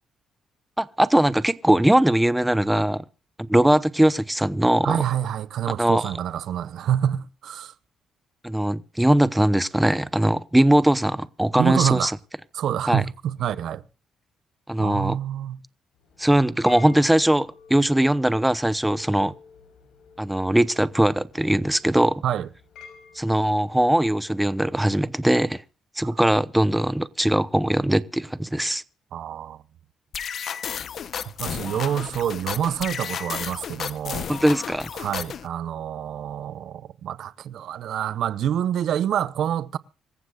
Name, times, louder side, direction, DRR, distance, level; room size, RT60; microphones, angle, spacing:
voice 1, 0.8-3.0 3.4-5.0 5.8-6.0 8.4-12.1 12.9-13.0 14.7-15.2 16.2-19.3 20.2-22.2 23.2-25.6 26.0-28.8 34.3-34.9, right 1 dB, 5° right, 0.8 m, -20 dB
voice 2, 4.8-7.7 11.6-12.1 12.5-13.8 14.8-15.6 22.2-22.5 26.0-26.1 29.1-29.6 31.4-34.3 34.9-39.8, right 10 dB, 70° right, 0.7 m, -27 dB
sound 1, 16.0-24.5, left 5 dB, 80° left, 5.9 m, -49 dB
sound 2, 30.1-35.5, left 8 dB, 60° left, 0.8 m, -33 dB
25.5 x 14.5 x 2.4 m
cardioid pair, 90°, 0 cm